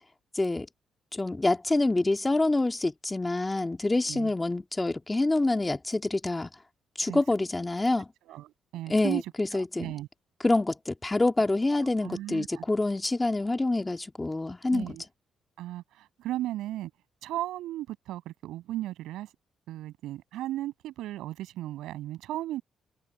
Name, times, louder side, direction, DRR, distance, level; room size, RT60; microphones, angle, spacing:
voice 1, 0.3-0.7 1.1-6.5 7.0-8.1 8.9-9.9 10.4-15.0, left 2 dB, 15° left, 2.6 m, -26 dB
voice 2, 3.9-4.3 7.0-7.2 8.2-9.2 9.5-10.1 12.0-12.7 14.7-15.0 15.6-16.9 17.2-19.3 19.7-22.6, right 14 dB, 90° right, 6.9 m, -36 dB
cardioid pair, 90°, 0 cm